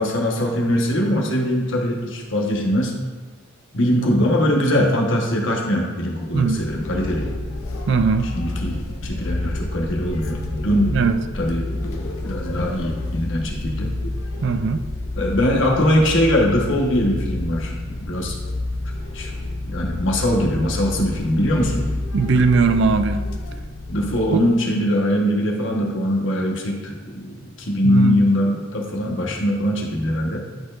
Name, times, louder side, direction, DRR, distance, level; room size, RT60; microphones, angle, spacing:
voice 1, 0.0-3.0 3.7-7.3 8.3-11.0 11.3-13.9 15.2-17.7 18.0-18.3 19.1-19.3 19.7-21.8 23.9-30.4, equal, 65° left, -1 dB, 1.2 m, -21 dB
sound 1, 6.3-24.5, left 2 dB, 85° left, 0.7 m, -29 dB
voice 2, 7.9-8.3 10.9-11.2 14.4-14.8 22.1-23.2 27.8-28.2, right 4 dB, 55° right, 10 dB, 0.4 m, -19 dB
11.0 x 4.3 x 2.5 m, 1.3 s
head